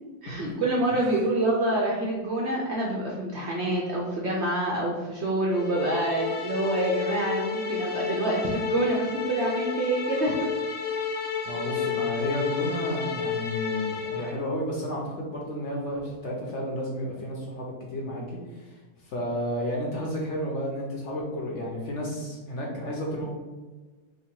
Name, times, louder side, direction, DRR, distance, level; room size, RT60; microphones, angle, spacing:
voice 1, 0.2-10.5, right 1 dB, 65° right, -3 dB, 0.7 m, -27 dB
sound 1, 5.5-14.4, left 6 dB, 80° left, 0.5 m, -31 dB
voice 2, 11.5-18.8 19.0-23.3, equal, 60° left, -2 dB, 0.8 m, -32 dB
3.0 x 2.5 x 4.3 m, 1.3 s
omnidirectional pair, 1.6 m